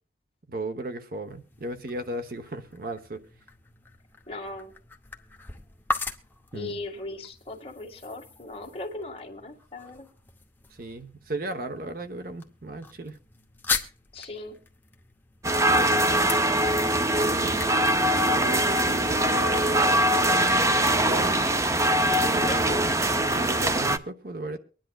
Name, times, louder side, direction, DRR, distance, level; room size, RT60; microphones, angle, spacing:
voice 1, 0.5-3.2 6.5-6.8 10.8-13.2 15.7-16.1 17.1-17.9 18.2-21.4 21.9-22.9 23.3-24.6, right 1 dB, 55° right, 1.0 m, -36 dB
sound 1, 1.2-19.0, left 3 dB, 10° left, 0.8 m, -39 dB
voice 2, 4.3-4.7 6.5-10.1 14.1-14.6 22.4-22.9, left 2 dB, 35° left, 1.9 m, -38 dB
sound 2, 15.4-24.0, right 1 dB, 15° right, 0.5 m, -22 dB
23.5 x 10.5 x 2.3 m
head